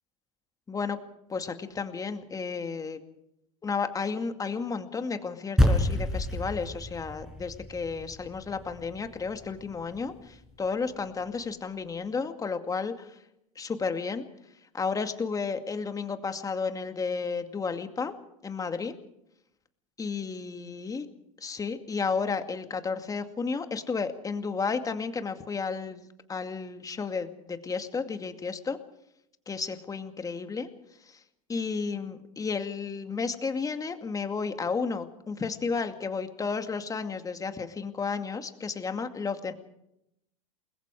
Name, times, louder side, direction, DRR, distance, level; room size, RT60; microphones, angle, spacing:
voice 1, 0.7-1.0 1.3-3.0 3.6-13.2 13.6-14.3 14.7-18.1 18.4-18.9 20.0-21.1 21.4-28.8 29.5-30.7 31.1-31.2 31.5-39.5, left 5 dB, 20° left, 7 dB, 2.3 m, -32 dB
sound 1, 5.6-10.1, left 1 dB, 5° right, 4.7 m, -29 dB
28.5 x 21.0 x 4.9 m, 0.81 s
hypercardioid pair, 100°, 18 cm